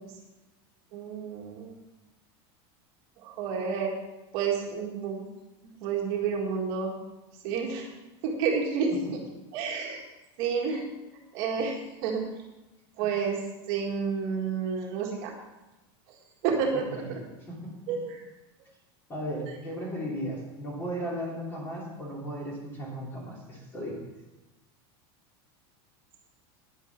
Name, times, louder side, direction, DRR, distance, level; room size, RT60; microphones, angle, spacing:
voice 1, 0.9-1.8 3.2-3.9 4.3-5.3 5.8-7.0 7.4-7.9 8.2-8.9 9.5-10.0 10.4-10.9 11.3-11.8 12.0-12.2 13.0-13.4 13.7-15.3 16.4-17.0 17.9-18.2, right 6 dB, 40° right, 0 dB, 1.8 m, -29 dB
voice 2, 16.7-17.2 17.5-17.7 19.1-24.0, equal, 15° left, -2 dB, 2.7 m, -36 dB
10.0 x 9.3 x 5.8 m, 1.0 s
supercardioid pair, 180°, 13 cm